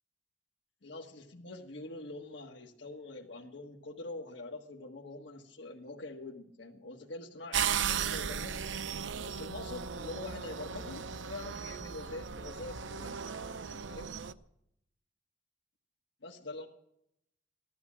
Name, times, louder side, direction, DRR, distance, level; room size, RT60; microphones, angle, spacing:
voice 1, 0.8-8.6 9.2-13.3 13.7-14.1 16.2-16.7, left 2 dB, 75° left, 0 dB, 1.5 m, -45 dB
sound 1, 7.5-14.3, right 7 dB, 85° right, 0.6 m, -36 dB
16.0 x 12.5 x 7.4 m, 0.78 s
head